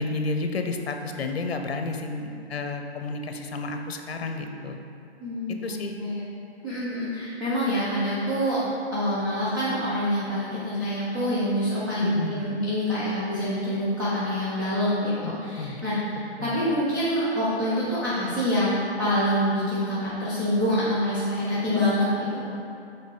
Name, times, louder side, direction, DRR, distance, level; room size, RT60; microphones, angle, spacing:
voice 1, 0.0-4.8 5.6-5.9 12.0-12.5 15.2-15.8 16.4-16.6, left 3 dB, 65° left, 5 dB, 0.7 m, -31 dB
voice 2, 5.2-6.2 6.6-8.6 8.9-22.5, equal, 20° right, -11 dB, 0.5 m, -26 dB
6.3 x 4.0 x 3.8 m, 2.6 s
hypercardioid pair, 170°, 33 cm